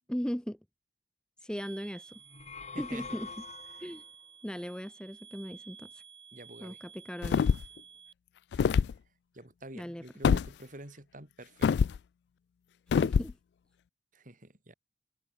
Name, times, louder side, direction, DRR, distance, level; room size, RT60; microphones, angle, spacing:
voice 1, 0.1-0.6 1.4-2.2 2.8-3.3 3.8-4.0 4.4-6.0 6.6-7.4 9.7-10.0 12.9-13.4, equal, 5° left, 1.0 m, -37 dB
sound 1, 1.6-8.1, right 7 dB, 30° right, 2.4 m, -52 dB
sound 2, 2.2-4.1, left 5 dB, 40° left, 3.0 m, -45 dB
voice 2, 2.7-3.1 3.7-3.9 6.3-6.8 8.5-8.8 9.3-11.7 14.1-14.7, right 1 dB, 45° right, 5.0 m, -49 dB
sound 3, 7.2-7.8 8.5-8.9 10.2-10.5 11.6-12.0 12.9-13.3, left 6 dB, 70° left, 0.3 m, -25 dB
head